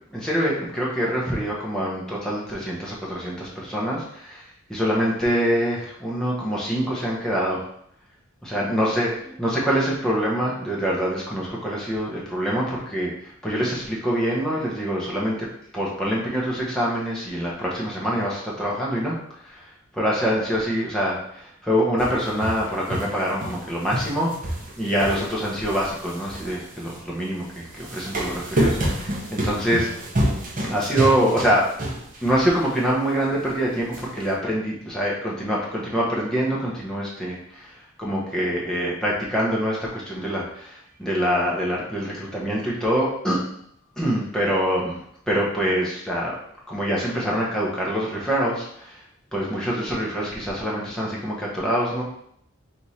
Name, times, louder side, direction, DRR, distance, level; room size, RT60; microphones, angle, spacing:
voice 1, 0.1-4.4 4.7-7.6 8.4-9.1 9.4-13.1 13.4-15.4 15.7-19.1 19.4-19.6 19.9-24.3 24.8-29.9 30.6-31.6 32.2-37.7 38.0-43.4 44.0-45.0 45.3-46.3 46.7-49.0 49.3-52.0, equal, 5° left, -5 dB, 0.9 m, -25 dB
sound 1, 22.0-23.6 23.9-27.0 27.7-32.4 32.8-32.9 33.9-34.0, right 1 dB, 40° right, 0.9 m, -28 dB
3.5 x 3.1 x 4.1 m, 0.70 s
head